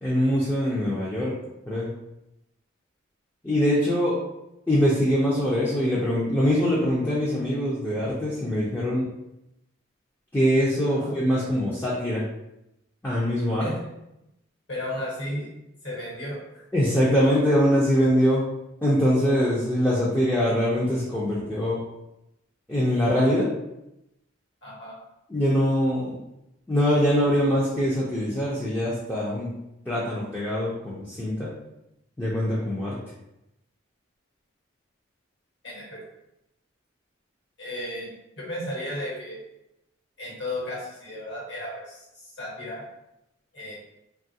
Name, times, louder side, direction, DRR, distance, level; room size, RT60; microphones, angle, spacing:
voice 1, 0.0-1.3 1.7-1.9 3.4-4.2 4.7-9.1 10.3-12.2 13.0-13.7 16.7-18.5 18.8-21.8 22.7-23.5 25.3-26.2 26.7-29.5 29.9-31.5 32.2-33.0, equal, 10° left, -7 dB, 0.4 m, -23 dB
voice 2, 14.7-15.5 15.8-16.6 24.6-25.0 35.6-36.0 37.6-39.4 40.2-42.8 43.5-43.7, left 1 dB, 60° left, -5 dB, 1.1 m, -34 dB
3.1 x 2.3 x 2.7 m, 0.88 s
head